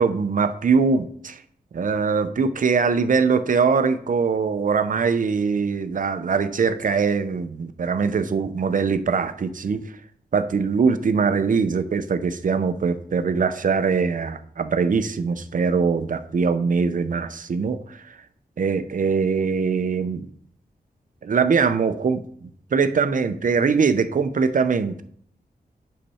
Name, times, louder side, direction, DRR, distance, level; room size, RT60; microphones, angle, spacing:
voice 1, 0.0-1.4 1.7-9.9 10.3-18.2 18.6-20.3 21.2-25.0, right 5 dB, 50° right, 11 dB, 0.6 m, -22 dB
8.4 x 6.6 x 4.3 m, 0.62 s
wide cardioid pair, 165°, 17 cm